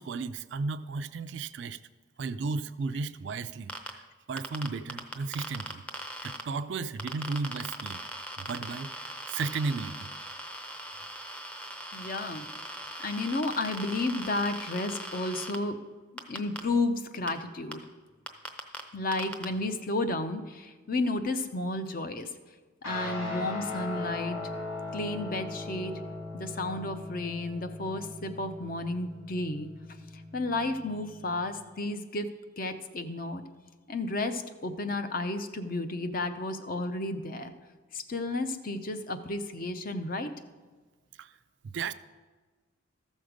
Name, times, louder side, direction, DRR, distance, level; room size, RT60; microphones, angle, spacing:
voice 1, 0.0-1.8 2.2-4.0 4.3-5.8 6.2-8.0 8.4-10.1 41.2-41.3 41.7-41.9, right 4 dB, 60° right, 13 dB, 0.3 m, -34 dB
sound 1, 3.7-3.9 4.4-6.4 7.0-15.6 16.2-16.6 17.3-17.4 17.7-17.8 18.3-18.8 19.1-19.4, equal, 5° left, 0.6 m, -39 dB
voice 2, 11.9-12.5 13.0-15.8 16.1-17.8 18.9-22.3 22.8-24.4 24.9-25.9 26.3-29.7 30.3-32.3 32.6-33.4 33.9-37.5 37.9-40.3, left 2 dB, 45° left, 9 dB, 0.6 m, -32 dB
Guitar, 22.8-31.6, left 2 dB, 90° left, 4.0 m, -39 dB
14.0 x 6.4 x 5.1 m, 1.3 s
head